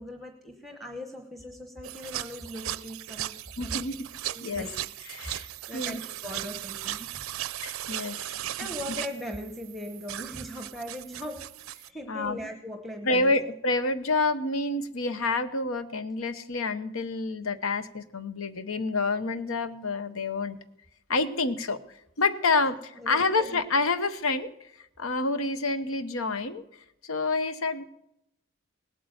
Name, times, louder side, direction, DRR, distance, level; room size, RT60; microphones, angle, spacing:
voice 1, 0.0-3.8 4.3-4.7 5.3-5.4 5.7-7.2 8.6-11.6 11.9-13.3 22.5-23.7, equal, ahead, 4 dB, 0.9 m, -40 dB
sound 1, 1.8-11.9, right 13 dB, 85° right, 0.5 m, -37 dB
voice 2, 3.6-4.1 4.4-4.7 5.1-5.5 5.7-6.0 7.6-8.3 12.1-12.4 13.0-20.6 21.1-21.8 22.2-24.5 25.0-26.6 27.0-27.8, left 3 dB, 85° left, 12 dB, 1.0 m, -28 dB
18.5 x 8.5 x 8.0 m, 0.81 s
head